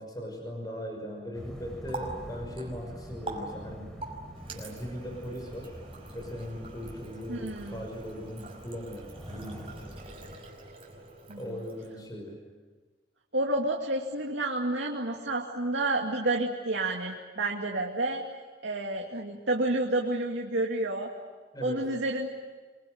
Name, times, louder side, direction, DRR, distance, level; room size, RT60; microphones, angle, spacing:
voice 1, 0.0-4.0 4.5-5.7 6.1-10.0 11.4-12.4 21.5-21.9, equal, 20° left, 2 dB, 5.8 m, -39 dB
sound 1, 1.3-10.4, equal, 5° left, 5.0 m, -46 dB
Water tap faucet, 1.4-12.2, right 2 dB, 30° right, 5.5 m, -45 dB
voice 2, 7.3-7.9 11.3-11.6 13.3-18.2 18.6-21.1 21.6-22.3, right 2 dB, 90° right, 0 dB, 2.4 m, -30 dB
26.0 x 23.5 x 9.4 m, 1.4 s
head